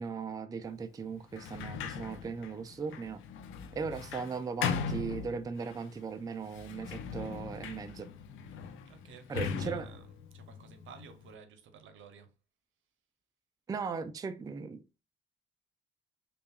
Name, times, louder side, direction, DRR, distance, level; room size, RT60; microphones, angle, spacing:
voice 1, 0.0-3.2 3.7-8.1 9.3-9.9 13.7-15.0, right 5 dB, 20° right, 0.3 m, -38 dB
Sliding door, 1.3-5.8 6.5-11.3, left 6 dB, 85° left, 0.5 m, -39 dB
voice 2, 8.9-12.3, right 6 dB, 80° right, 0.7 m, -53 dB
5.4 x 2.3 x 2.3 m
cardioid pair, 90°, 20 cm